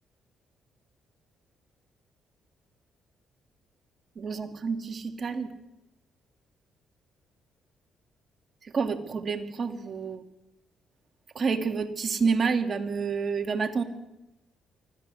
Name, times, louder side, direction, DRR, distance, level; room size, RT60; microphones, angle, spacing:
voice 1, 4.2-5.5 8.7-10.2 11.4-13.8, right 5 dB, 45° right, 6 dB, 2.4 m, -28 dB
24.5 x 15.5 x 7.9 m, 0.96 s
cardioid pair, 90°, 0 cm